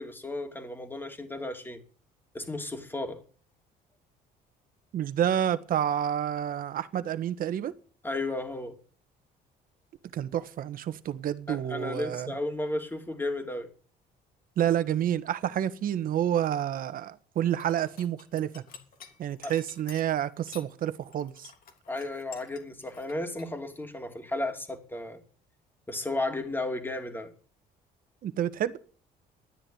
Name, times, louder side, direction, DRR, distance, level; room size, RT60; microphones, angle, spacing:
voice 1, 0.0-1.8 2.3-3.2 8.0-8.8 11.5-13.7 19.4-19.5 21.9-25.2 25.9-27.3, left 2 dB, 10° left, 2.9 m, -34 dB
voice 2, 4.9-7.7 10.1-12.3 14.6-18.6 19.2-21.5 28.2-28.8, right 10 dB, 55° right, 1.4 m, -29 dB
sound 1, 17.4-20.7 21.0-23.5, left 7 dB, 60° left, 3.4 m, -49 dB
13.0 x 10.0 x 9.3 m
cardioid pair, 110°, 17 cm